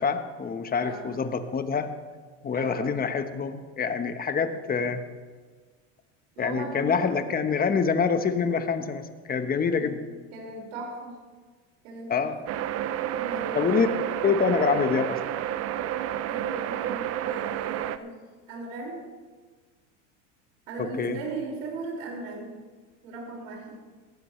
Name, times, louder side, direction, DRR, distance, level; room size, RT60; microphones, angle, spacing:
voice 1, 0.0-1.9 2.4-5.0 6.4-10.0 12.1-12.4 13.6-13.9 14.2-15.2 20.8-21.2, left 5 dB, 25° left, 8 dB, 1.2 m, -26 dB
voice 2, 2.5-2.9 6.4-7.2 9.8-10.0 10.3-11.2 11.8-12.6 13.1-14.0 16.3-18.1 18.5-19.0 20.7-22.5 23.0-23.7, right 2 dB, 75° right, -1 dB, 5.6 m, -37 dB
sound 1, 12.5-18.0, right 12 dB, 40° right, 0.7 m, -30 dB
18.0 x 15.5 x 3.3 m, 1.5 s
supercardioid pair, 115°, 38 cm